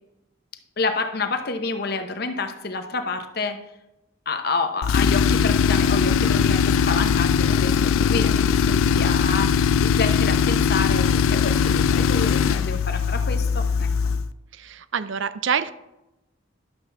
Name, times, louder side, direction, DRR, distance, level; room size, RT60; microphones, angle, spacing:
voice 1, 0.8-3.6 4.3-14.1, left 3 dB, 50° left, 7 dB, 0.8 m, -29 dB
Tools, 4.8-14.3, left 6 dB, 90° left, 0.4 m, -20 dB
voice 2, 14.5-15.7, right 7 dB, 65° right, 14 dB, 0.5 m, -26 dB
11.5 x 7.1 x 3.4 m, 0.93 s
head